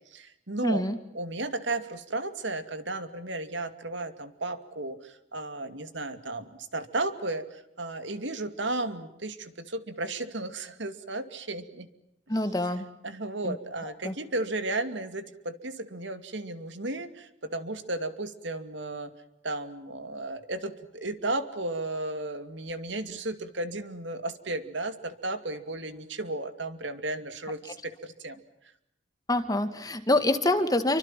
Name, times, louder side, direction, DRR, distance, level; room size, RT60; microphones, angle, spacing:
voice 1, 0.1-0.8 1.1-11.9 13.0-19.1 19.4-28.4, right 2 dB, 70° right, 10 dB, 2.6 m, -34 dB
voice 2, 0.6-1.0 12.3-12.9 13.4-13.6 14.0-14.1 29.3-31.0, left 1 dB, 20° left, 9 dB, 2.0 m, -26 dB
29.5 x 25.0 x 7.6 m, 0.82 s
head